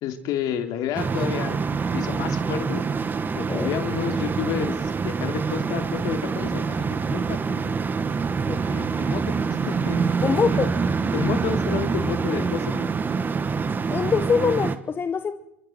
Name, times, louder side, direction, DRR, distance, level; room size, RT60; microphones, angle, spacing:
voice 1, 0.0-1.6 1.9-2.8 3.3-7.7 8.7-10.2 11.1-13.0, left 9 dB, 60° left, 6 dB, 2.9 m, -30 dB
sound 1, 0.9-14.8, right 5 dB, 25° right, 1.5 m, -26 dB
voice 2, 3.4-3.7 8.5-8.7 10.2-10.7 13.9-15.3, left 6 dB, 30° left, 10 dB, 1.1 m, -24 dB
28.0 x 24.5 x 4.5 m, 0.83 s
hypercardioid pair, 90°, 7 cm